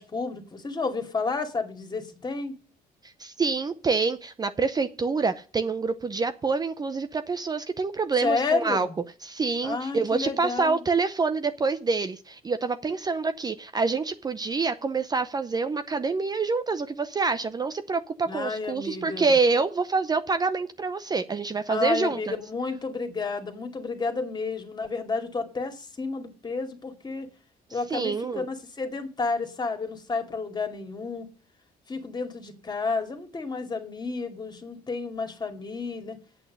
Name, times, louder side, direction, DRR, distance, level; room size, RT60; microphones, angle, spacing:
voice 1, 0.0-2.5 8.2-8.9 9.6-10.8 18.3-19.4 21.7-27.3 27.7-31.3 31.9-36.2, left 4 dB, 25° left, 6 dB, 2.4 m, -31 dB
voice 2, 3.0-8.9 9.2-22.4 27.9-28.4, right 4 dB, 25° right, 10 dB, 0.7 m, -26 dB
8.7 x 8.6 x 6.6 m, 0.37 s
cardioid pair, 110°, 17 cm